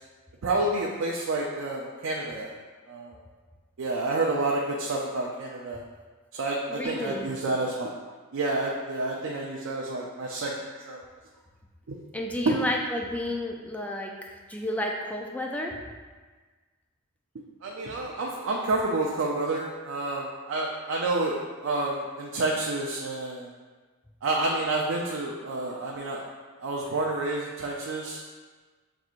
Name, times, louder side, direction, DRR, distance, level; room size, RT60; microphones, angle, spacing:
voice 1, 0.4-2.5 2.9-3.2 3.8-5.8 6.3-7.9 8.3-10.5 10.9-11.0 11.9-12.0 12.4-12.6 17.6-23.5 24.2-26.2 26.6-28.2, right 2 dB, 65° right, -2 dB, 0.4 m, -29 dB
voice 2, 6.7-7.3 12.1-15.8 25.7-26.0 26.8-27.0, left 1 dB, 5° left, 1 dB, 0.3 m, -32 dB
5.9 x 2.7 x 2.4 m, 1.4 s
head